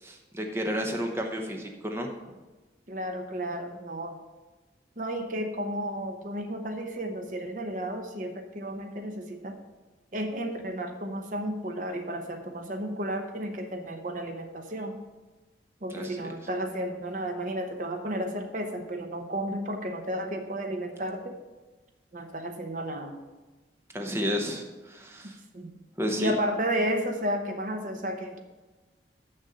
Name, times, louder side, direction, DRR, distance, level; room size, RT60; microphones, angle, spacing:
voice 1, 0.0-2.2 15.9-16.2 23.9-25.4 26.0-26.3, equal, 15° right, 2 dB, 0.8 m, -31 dB
voice 2, 2.9-4.2 5.0-9.6 10.1-15.0 15.8-21.4 22.1-23.2 25.5-25.8 26.2-28.4, right 1 dB, 45° right, 5 dB, 0.8 m, -32 dB
7.0 x 6.5 x 6.7 m, 1.2 s
head